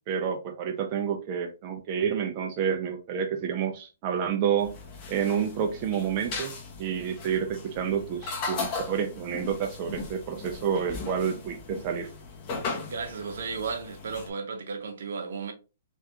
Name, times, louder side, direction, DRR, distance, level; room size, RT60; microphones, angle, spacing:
voice 1, 0.1-4.7 5.1-6.5 6.8-12.1, right 7 dB, 30° right, 0.4 m, -29 dB
sound 1, 4.6-14.3, left 4 dB, 30° left, 1.0 m, -38 dB
voice 2, 12.9-15.5, right 5 dB, 70° right, 0.7 m, -34 dB
3.4 x 2.3 x 2.8 m
hypercardioid pair, 155°, 0 cm